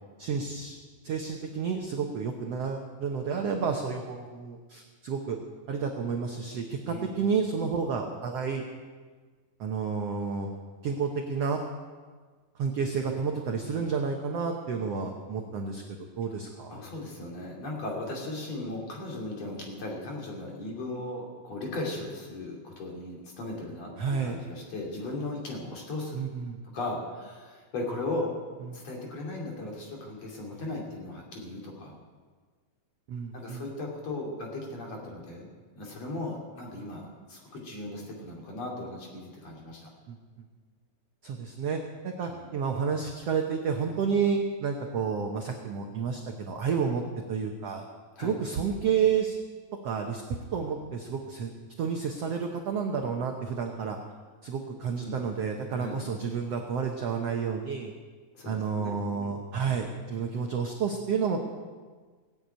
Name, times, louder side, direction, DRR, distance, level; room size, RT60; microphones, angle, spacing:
voice 1, 0.2-0.8 1.0-5.4 5.7-8.6 9.6-10.5 10.8-11.6 12.6-16.8 24.0-24.4 26.1-26.6 28.6-28.8 33.1-33.7 40.1-40.2 41.2-41.8 42.0-46.2 46.5-47.0 47.3-47.8 48.2-49.4 49.8-50.2 50.5-51.5 51.8-54.0 54.4-57.9 58.4-61.4, right 6 dB, 75° right, 2 dB, 1.4 m, -30 dB
voice 2, 6.8-7.3 16.7-26.2 26.7-28.3 28.7-32.0 33.3-39.9 42.3-42.5 48.2-48.4 55.0-55.2 55.7-56.0 58.4-59.3, left 2 dB, 45° left, -1 dB, 3.5 m, -37 dB
19.0 x 8.0 x 9.1 m, 1.5 s
omnidirectional pair, 4.4 m